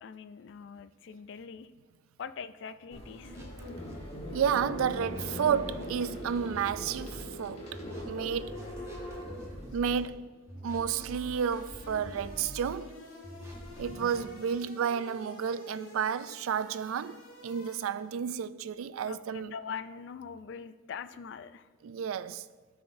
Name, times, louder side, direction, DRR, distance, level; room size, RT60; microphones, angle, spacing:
voice 1, 0.0-1.7 2.2-3.4 19.1-21.7, left 6 dB, 60° left, 0.3 m, -42 dB
sound 1, 2.9-10.1, equal, 30° left, 1.2 m, -41 dB
sound 2, 3.2-4.5 5.0-7.2 7.7-10.0 10.5-12.7 13.2-14.3, equal, 15° right, 1.1 m, -45 dB
voice 2, 4.3-8.5 9.7-10.3 10.6-13.0 13.8-19.5 21.8-22.5, right 7 dB, 80° right, 0.3 m, -31 dB
sound 3, 10.9-18.3, left 2 dB, 90° left, 1.5 m, -51 dB
12.5 x 5.7 x 2.6 m
head